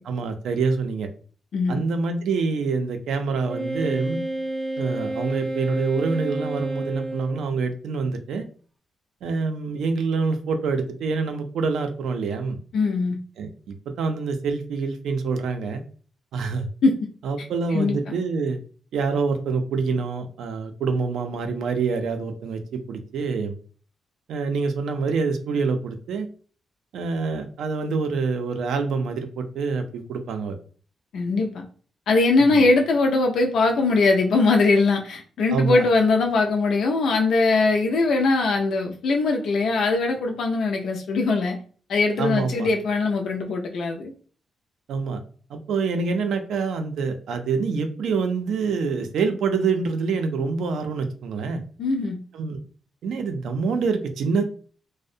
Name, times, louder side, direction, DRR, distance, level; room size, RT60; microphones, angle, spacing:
voice 1, 0.0-1.1 1.7-4.2 4.8-8.5 9.2-12.6 13.4-13.5 14.0-15.8 16.3-16.7 17.2-18.6 18.9-23.5 24.3-26.3 26.9-30.6 32.4-32.6 35.5-35.8 42.2-42.7 44.9-45.2 45.5-51.6 52.3-52.6 53.0-54.4, right 4 dB, 90° right, 6 dB, 0.4 m, -26 dB
Wind instrument woodwind instrument, 3.5-7.5, right 1 dB, 10° right, 0.5 m, -30 dB
voice 2, 12.7-13.2 16.8-16.9 17.7-18.2 31.1-31.6 32.1-41.6 41.9-44.1 51.8-52.2, left 3 dB, 75° left, 2 dB, 0.3 m, -21 dB
2.4 x 2.0 x 2.6 m, 0.42 s
cardioid pair, 135°, 0 cm